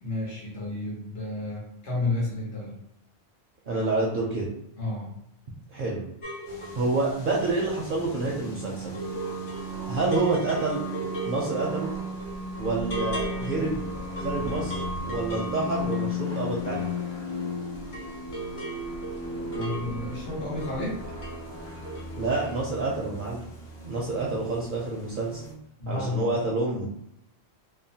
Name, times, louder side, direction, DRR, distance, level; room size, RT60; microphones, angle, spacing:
voice 1, 0.0-2.7 4.8-5.1 8.0-8.2 19.5-21.0 25.8-26.3, left 2 dB, 85° left, -4 dB, 1.3 m, -31 dB
voice 2, 3.7-4.5 5.7-6.0 6.7-8.9 9.9-10.8 11.2-11.9 12.6-13.8 14.2-16.9 22.2-23.4 23.8-25.4 25.9-26.9, right 3 dB, 60° right, -3 dB, 0.6 m, -28 dB
sound 1, 6.2-17.5 17.8-21.5 21.7-22.2 22.4-22.5, equal, 40° left, 0.5 m, -38 dB
sound 2, 6.4-25.5, left 1 dB, 65° left, 1.0 m, -36 dB
2.8 x 2.1 x 2.7 m, 0.76 s
omnidirectional pair, 1.1 m